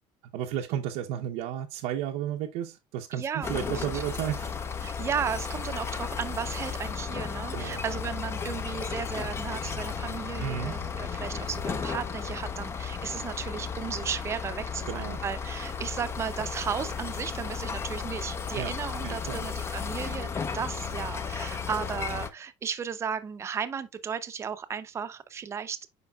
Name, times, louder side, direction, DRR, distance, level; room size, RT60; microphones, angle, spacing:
voice 1, 0.3-4.5 7.5-7.8 10.4-10.8 14.8-15.2 18.6-18.7 19.0-19.4, right 10 dB, 85° right, 0.8 m, -33 dB
voice 2, 3.1-4.0 4.8-25.8, right 7 dB, 25° right, 0.6 m, -35 dB
sound 1, 3.4-22.3, left 6 dB, 25° left, 0.6 m, -34 dB
8.1 x 5.2 x 2.3 m
cardioid pair, 155°, 11 cm